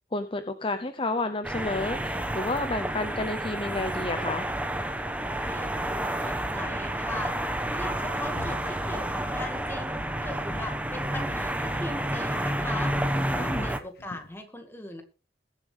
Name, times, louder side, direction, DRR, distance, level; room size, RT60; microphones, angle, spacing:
voice 1, 0.1-4.5 13.4-13.7, left 2 dB, 30° left, 9 dB, 0.8 m, -30 dB
sound 1, 1.4-13.8, right 1 dB, 10° right, 1.0 m, -30 dB
voice 2, 5.4-7.3 7.7-12.9 13.3-15.0, left 1 dB, 15° left, 4 dB, 2.0 m, -39 dB
Walk footsteps, 7.8-8.1 8.4-11.4 11.6-12.0 12.2-13.6 14.0-14.3, left 2 dB, 60° left, 1.3 m, -46 dB
21.0 x 7.4 x 3.5 m, 0.33 s
head